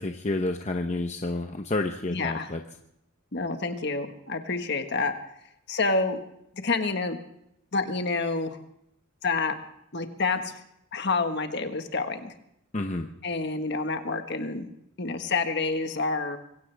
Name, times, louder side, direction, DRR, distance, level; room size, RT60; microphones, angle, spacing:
voice 1, 0.0-2.6 12.7-13.1, left 2 dB, 35° left, 4 dB, 0.8 m, -29 dB
voice 2, 2.1-2.5 3.3-5.1 5.7-6.2 6.6-7.2 7.7-8.6 9.2-9.6 9.9-10.6 10.9-12.3 13.2-14.7 15.0-16.4, left 3 dB, 50° left, 6 dB, 1.5 m, -28 dB
25.0 x 16.0 x 3.4 m, 0.78 s
head